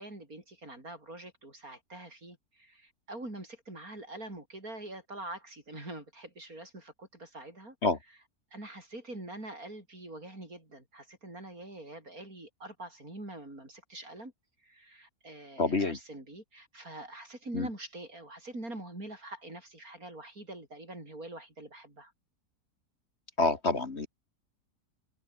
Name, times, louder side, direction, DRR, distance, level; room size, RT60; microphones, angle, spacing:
voice 1, 0.0-7.8 8.5-14.3 14.6-22.1, right 2 dB, 60° right, 8.2 m, -45 dB
voice 2, 15.6-16.0 17.5-17.7 23.4-24.1, left 3 dB, 45° left, 2.1 m, -27 dB
omnidirectional pair, 1.7 m